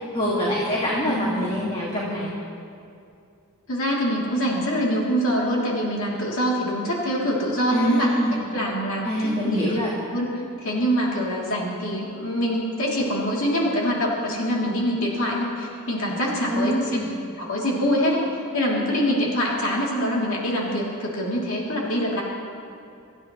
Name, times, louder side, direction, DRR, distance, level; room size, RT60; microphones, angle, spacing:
voice 1, 0.1-2.3 7.7-8.4 9.0-9.9 16.5-17.1, equal, 25° left, -5 dB, 2.0 m, -25 dB
voice 2, 1.1-1.5 3.7-9.8 10.1-10.3 10.6-17.0 17.4-18.2 18.5-22.2, equal, 65° left, -4 dB, 2.9 m, -24 dB
25.0 x 14.5 x 3.1 m, 2.5 s
head